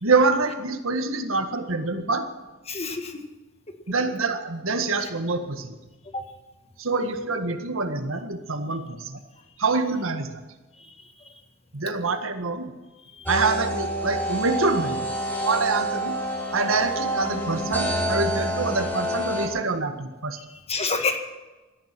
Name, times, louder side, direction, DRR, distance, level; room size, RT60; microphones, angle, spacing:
voice 1, 0.0-2.3 3.9-5.8 6.8-9.2 9.6-10.4 11.7-12.7 13.3-15.1 15.4-16.2 16.5-20.4, right 3 dB, 85° right, 7 dB, 1.8 m, -25 dB
voice 2, 2.7-3.2 6.1-6.2 20.4-21.2, left 4 dB, 30° left, 6 dB, 1.8 m, -28 dB
sound 1, 13.2-19.5, right 1 dB, 10° left, 4.2 m, -27 dB
18.0 x 13.0 x 6.1 m, 1.2 s
head